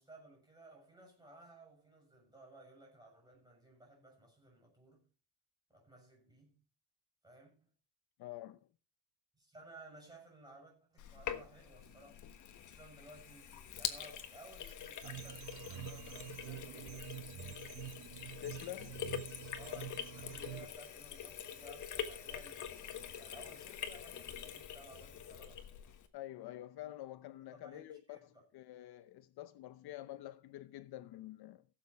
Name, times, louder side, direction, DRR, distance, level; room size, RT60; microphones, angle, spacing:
voice 1, 0.0-5.1 5.7-6.6 7.2-7.5 9.4-12.2 12.7-17.1 19.6-25.7 27.5-28.2, right 1 dB, 10° right, 7.0 m, -58 dB
voice 2, 8.2-8.6 18.4-19.1 26.1-31.7, left 14 dB, 65° left, 0.8 m, -48 dB
Sink (filling or washing), 11.0-26.1, left 9 dB, 45° left, 1.4 m, -45 dB
sound 1, 15.0-20.7, right 11 dB, 90° right, 1.4 m, -47 dB
16.5 x 7.7 x 4.6 m
cardioid pair, 175°, 40 cm